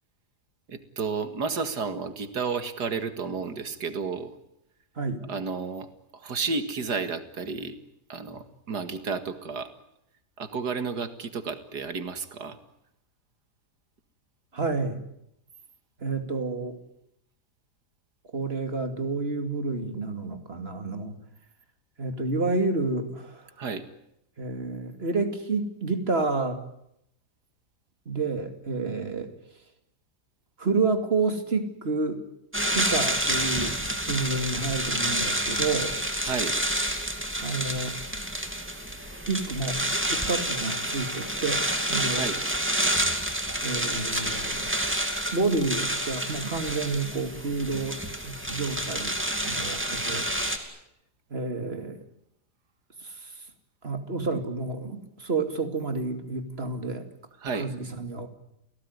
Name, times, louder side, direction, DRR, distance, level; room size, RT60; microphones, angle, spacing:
voice 1, 0.7-4.3 5.3-7.8 8.1-9.7 10.4-12.6 23.6-23.9 36.2-36.7 42.1-42.4 57.4-57.7, right 5 dB, 85° right, 9 dB, 2.5 m, -32 dB
voice 2, 14.5-15.0 16.0-16.8 18.3-21.1 22.0-23.4 24.4-26.6 28.1-29.3 30.6-32.2 32.6-33.8 34.0-36.0 37.4-38.0 39.3-39.8 40.1-42.2 43.6-44.7 45.3-49.2 49.5-50.7 51.3-52.0 53.0-53.3 53.8-57.1 57.6-58.3, right 3 dB, 40° right, 7 dB, 2.8 m, -29 dB
sound 1, 32.5-50.6, right 1 dB, 5° right, 2.6 m, -29 dB
29.0 x 18.0 x 9.7 m, 0.80 s
omnidirectional pair, 1.7 m